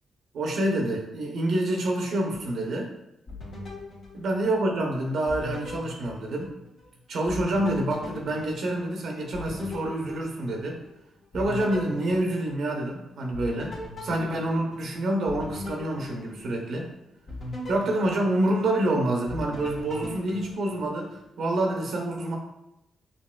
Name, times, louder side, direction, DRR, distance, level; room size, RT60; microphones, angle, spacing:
voice 1, 0.3-2.9 4.1-6.5 7.1-10.8 11.3-13.7 14.0-16.9 17.7-21.1 21.4-22.4, right 1 dB, 70° right, 0 dB, 0.7 m, -27 dB
sound 1, 3.3-4.9 5.3-6.9 7.3-10.9 11.3-12.9 13.3-16.8 17.3-18.9 19.3-21.2, left 2 dB, 65° left, 1.2 m, -40 dB
5.1 x 2.6 x 2.3 m, 0.87 s
hypercardioid pair, 45°, 0 cm